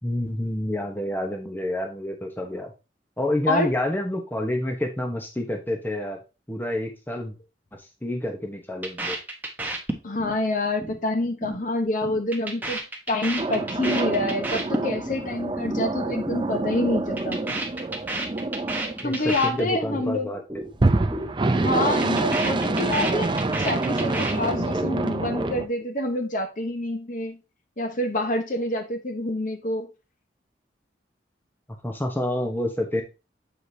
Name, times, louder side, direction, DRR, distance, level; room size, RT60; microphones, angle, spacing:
voice 1, 0.0-2.7 3.2-6.2 6.5-7.3 8.0-9.2 19.0-20.4 31.7-33.0, left 1 dB, 10° left, 1.0 m, -28 dB
sound 1, 8.8-10.4 10.6-11.0 11.2-11.6 11.9-15.2 15.5-15.8 16.1-16.4 16.7-20.1 20.3-20.7 20.9-21.3 21.6-24.9 25.2-25.8, right 1 dB, 10° right, 1.1 m, -32 dB
voice 2, 10.0-12.8 13.1-17.5 19.0-20.3 21.5-23.3 23.6-27.4 27.8-29.9, left 1 dB, 50° left, 1.0 m, -27 dB
sound 2, 13.4-19.7 20.7-25.7, right 2 dB, 25° right, 0.5 m, -26 dB
7.7 x 5.0 x 2.7 m
head